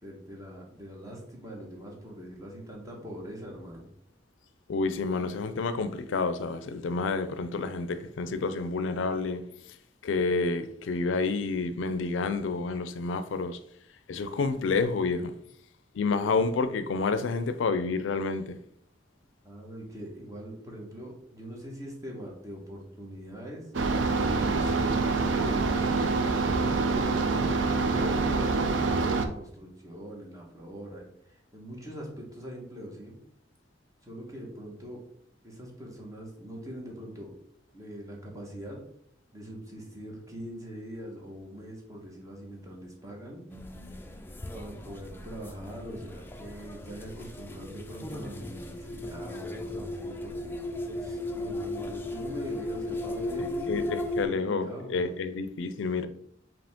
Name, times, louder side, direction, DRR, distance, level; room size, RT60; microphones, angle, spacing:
voice 1, 0.0-3.9 19.4-23.7 24.4-33.2 34.0-35.0 35.4-37.3 37.7-38.8 39.3-43.4 44.5-50.6 51.0-54.9, equal, 20° right, 1.1 m, -42 dB
voice 2, 4.7-9.4 10.0-13.6 14.1-15.3 15.9-18.6 53.7-56.1, left 4 dB, 75° left, 0.4 m, -29 dB
sound 1, 23.7-29.3, right 4 dB, 75° right, 0.5 m, -26 dB
sound 2, 43.5-54.2, left 1 dB, 10° left, 0.4 m, -36 dB
5.0 x 2.9 x 3.5 m
head